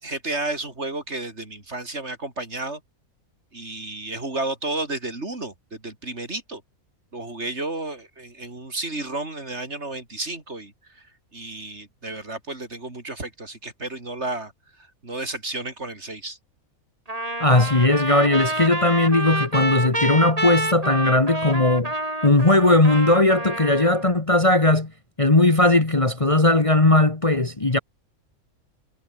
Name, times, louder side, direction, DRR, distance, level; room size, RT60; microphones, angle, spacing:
voice 1, 0.0-2.8 3.5-6.6 7.1-14.5 14.8-16.4, right 2 dB, 50° right, 4.4 m, -32 dB
Trumpet, 17.1-24.1, right 1 dB, 25° right, 4.6 m, -28 dB
voice 2, 17.4-21.9 22.2-24.9 25.2-27.8, left 2 dB, 25° left, 1.6 m, -18 dB
omnidirectional pair, 1.5 m